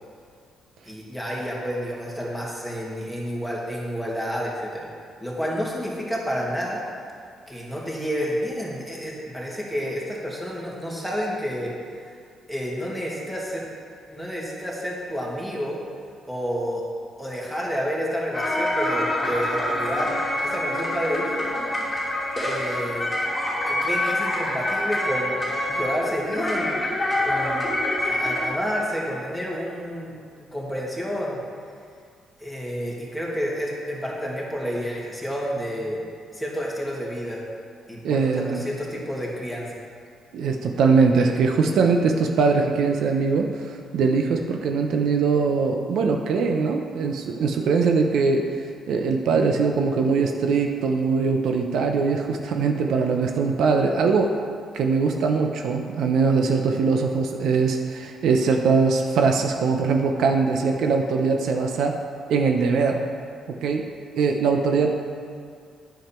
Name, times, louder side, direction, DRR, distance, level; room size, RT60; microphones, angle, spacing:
voice 1, 0.9-4.9 5.2-6.8 7.5-11.7 12.5-13.6 14.1-15.8 16.3-16.8 17.2-20.1 20.4-21.5 22.4-23.1 23.7-25.4 25.7-26.8 27.2-27.8 28.0-30.1 30.4-31.4 32.4-36.1 36.3-37.4 37.9-39.7, equal, ahead, -4 dB, 2.2 m, -30 dB
sound 1, 18.3-28.5, left 1 dB, 15° left, 2.5 m, -26 dB
voice 2, 38.0-38.6 40.3-48.5 48.9-54.3 54.7-62.0 62.3-63.1 63.6-63.8 64.1-64.9, right 4 dB, 75° right, 3 dB, 0.7 m, -21 dB
9.2 x 7.2 x 4.4 m, 2.2 s
cardioid pair, 90°, 0 cm